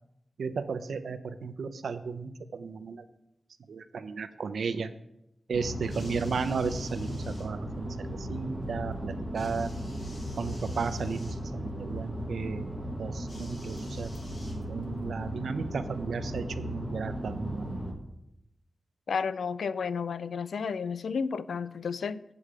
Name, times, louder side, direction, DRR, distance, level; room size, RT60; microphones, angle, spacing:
voice 1, 0.4-3.0 3.7-4.9 5.5-9.7 10.4-12.7 13.0-14.1 14.7-17.8, right 5 dB, 85° right, 0.6 m, -34 dB
sound 1, 5.5-17.9, equal, ahead, 1.4 m, -36 dB
sound 2, 5.8-7.5 9.3-11.4 13.3-15.0 15.9-16.0, left 1 dB, 35° left, 1.9 m, -53 dB
voice 2, 19.1-22.2, left 5 dB, 85° left, 0.3 m, -32 dB
8.5 x 4.9 x 7.5 m
wide cardioid pair, 180°, 0 cm